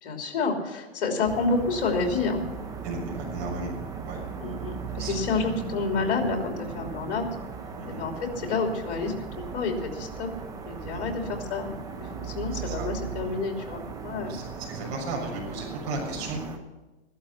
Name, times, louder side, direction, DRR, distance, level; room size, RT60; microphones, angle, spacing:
voice 1, 0.0-2.4 4.4-7.3 7.8-10.3 10.6-14.4, left 4 dB, 55° left, 3 dB, 3.2 m, -29 dB
sound 1, 1.2-16.6, right 5 dB, 10° right, 0.8 m, -37 dB
voice 2, 2.8-3.7 4.0-4.2 5.0-5.2 7.8-8.0 10.9-11.1 12.5-12.9 14.3-16.4, right 3 dB, 40° right, -1 dB, 6.5 m, -35 dB
14.5 x 12.0 x 5.9 m, 1.1 s
hypercardioid pair, 155°, 33 cm